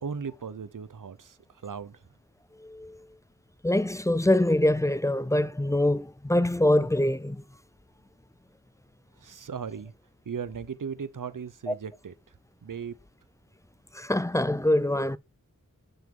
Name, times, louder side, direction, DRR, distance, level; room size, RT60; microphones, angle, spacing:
voice 1, 0.0-1.4 1.6-2.0 9.2-9.9 10.3-12.1 12.6-12.9, right 6 dB, 65° right, 0.7 m, -37 dB
voice 2, 2.6-3.0 3.6-7.4 11.7-11.8 13.9-15.2, left 1 dB, 10° left, 0.3 m, -24 dB
6.8 x 6.3 x 3.7 m
wide cardioid pair, 40°, 34 cm